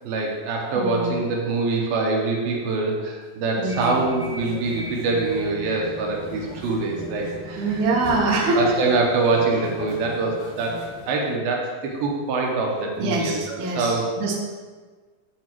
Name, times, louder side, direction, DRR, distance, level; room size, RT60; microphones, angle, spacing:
voice 1, 0.0-7.8 8.5-14.1, right 3 dB, 85° right, 0 dB, 2.7 m, -24 dB
voice 2, 0.8-1.1 3.6-4.1 7.6-8.8 13.0-14.3, right 2 dB, 65° right, -2 dB, 2.2 m, -24 dB
sound 1, 3.6-11.1, left 2 dB, 65° left, 2.5 m, -38 dB
8.5 x 6.3 x 3.0 m, 1.4 s
omnidirectional pair, 4.2 m